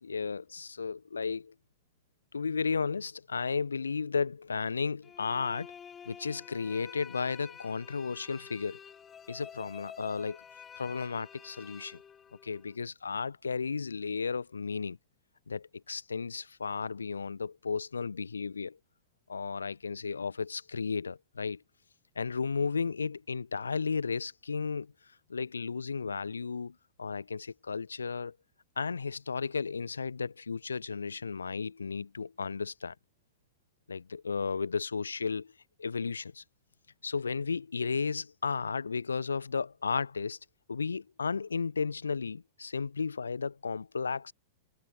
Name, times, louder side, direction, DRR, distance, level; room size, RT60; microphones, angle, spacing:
voice 1, 0.0-1.5 2.3-5.7 6.1-8.8 9.3-10.4 10.8-12.0 12.4-15.0 15.5-18.8 19.3-21.6 22.2-24.9 25.3-28.3 28.8-32.9 33.9-35.5 35.8-36.4 37.0-40.4 40.7-44.3, left 5 dB, 75° left, 0.8 m, -34 dB
sound 1, 5.0-12.8, left 7 dB, 20° left, 1.3 m, -50 dB
figure-of-eight pair, 95°, 0 cm